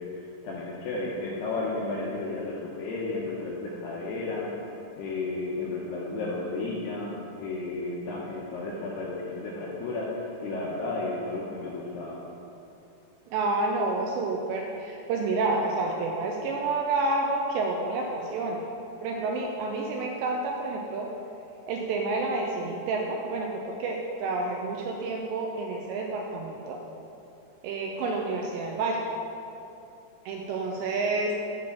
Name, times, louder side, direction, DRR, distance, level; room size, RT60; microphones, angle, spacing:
voice 1, 0.0-12.2, left 2 dB, 80° left, -4 dB, 2.4 m, -33 dB
voice 2, 13.3-18.6 19.0-21.1 21.7-26.8 27.6-29.1 30.3-31.3, right 3 dB, 80° right, 0 dB, 2.5 m, -29 dB
7.6 x 4.5 x 7.1 m, 2.8 s
omnidirectional pair, 5.5 m